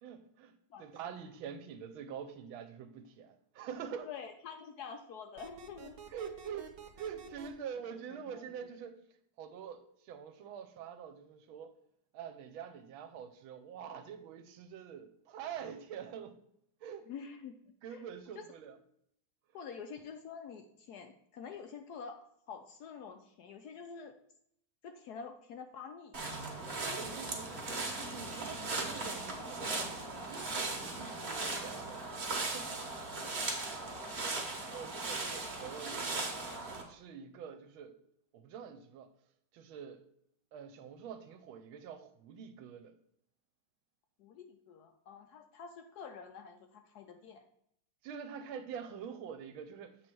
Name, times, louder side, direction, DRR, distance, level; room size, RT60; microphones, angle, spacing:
voice 1, 0.0-0.5 0.8-4.1 6.1-9.0 9.4-11.8 12.1-16.4 16.8-17.1 17.8-18.8 26.9-29.9 30.2-32.1 32.4-32.8 33.8-34.0 34.3-36.3 36.7-38.0 38.3-39.1 39.5-40.1 40.5-42.9 48.0-50.0, right 7 dB, 75° right, 1.5 m, -46 dB
voice 2, 4.0-6.3 7.8-8.5 17.1-17.5 17.9-18.0 18.3-18.5 19.5-22.2 22.5-24.1 24.8-26.2 33.8-34.3 44.2-47.4, left 6 dB, 80° left, 0.9 m, -47 dB
sound 1, 5.4-7.5, right 4 dB, 60° right, 1.2 m, -50 dB
sound 2, 26.1-36.8, right 3 dB, 35° right, 1.2 m, -38 dB
8.0 x 3.2 x 6.0 m
omnidirectional pair, 2.3 m